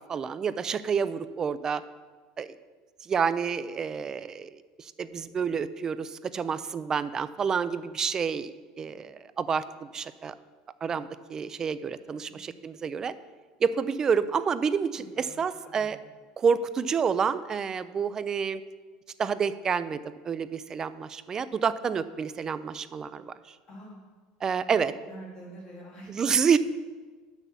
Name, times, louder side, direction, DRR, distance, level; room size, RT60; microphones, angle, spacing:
voice 1, 0.1-1.8 2.4-2.5 3.0-8.5 8.8-10.3 10.8-13.1 13.6-16.0 16.4-18.6 19.2-20.0 20.2-23.5 24.4-24.9 26.1-26.6, right 6 dB, 20° right, 14 dB, 0.3 m, -28 dB
voice 2, 12.1-12.4 15.0-15.3 15.6-16.0 23.7-24.1 24.7-26.5, right 1 dB, 30° left, -4 dB, 2.6 m, -47 dB
6.7 x 6.1 x 7.0 m, 1.4 s
cardioid pair, 155°, 3 cm